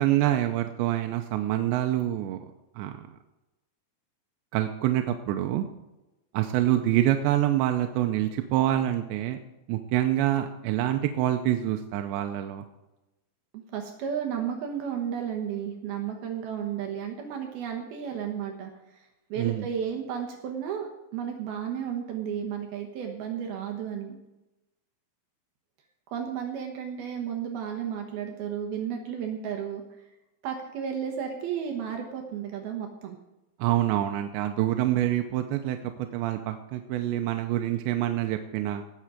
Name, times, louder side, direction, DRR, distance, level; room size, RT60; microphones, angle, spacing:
voice 1, 0.0-2.4 2.8-3.1 4.5-5.7 6.3-9.4 9.7-12.6 19.4-19.7 33.6-35.8 36.1-38.8, right 13 dB, 85° right, 5 dB, 2.9 m, -26 dB
voice 2, 13.7-19.0 19.3-24.2 26.1-29.8 30.4-33.2, right 8 dB, 65° right, 3 dB, 2.8 m, -33 dB
18.0 x 7.6 x 4.9 m, 0.99 s
omnidirectional pair, 5.3 m